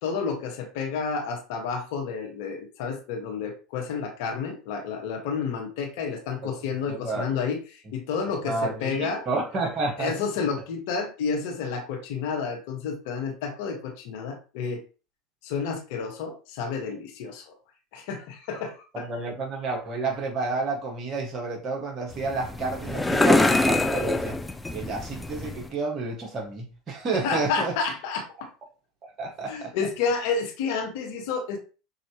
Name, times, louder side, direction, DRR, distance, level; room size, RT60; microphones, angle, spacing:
voice 1, 0.0-9.2 10.0-14.8 15.4-17.5 17.9-19.1 27.2-28.5 29.5-31.6, left 5 dB, 65° left, 1.5 m, -30 dB
voice 2, 6.9-7.3 8.5-10.1 18.9-24.4 24.7-27.7 29.0-29.7, right 3 dB, 40° right, 1.7 m, -30 dB
sound 1, 22.1-25.7, left 2 dB, 10° left, 0.5 m, -24 dB
5.9 x 2.9 x 3.0 m
hypercardioid pair, 85°, 0 cm